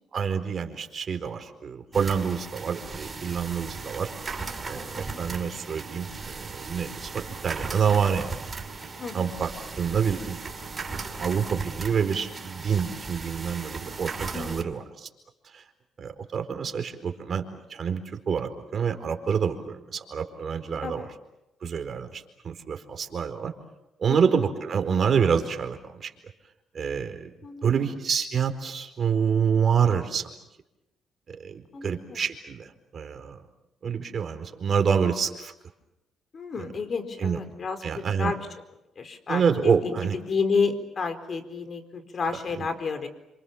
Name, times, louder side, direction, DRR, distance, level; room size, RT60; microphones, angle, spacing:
voice 1, 0.1-4.1 4.6-8.4 9.1-9.5 9.8-10.4 11.2-15.1 15.5-15.6 16.0-18.0 18.3-21.1 21.6-23.5 24.0-26.1 26.7-27.3 27.6-30.3 31.3-33.4 33.8-35.5 37.2-37.4 37.8-38.3 39.3-40.2, right 6 dB, 50° right, 6 dB, 4.4 m, -27 dB
sound 1, 1.9-14.6, right 4 dB, 30° right, 5.9 m, -37 dB
voice 2, 4.7-5.2 9.0-9.3 14.3-14.9 20.8-21.1 24.1-24.2 27.4-27.9 31.7-32.2 36.3-38.5 39.0-39.9 40.3-43.1, left 4 dB, 45° left, 8 dB, 4.4 m, -31 dB
28.5 x 27.0 x 7.2 m, 0.91 s
cardioid pair, 90°, 0 cm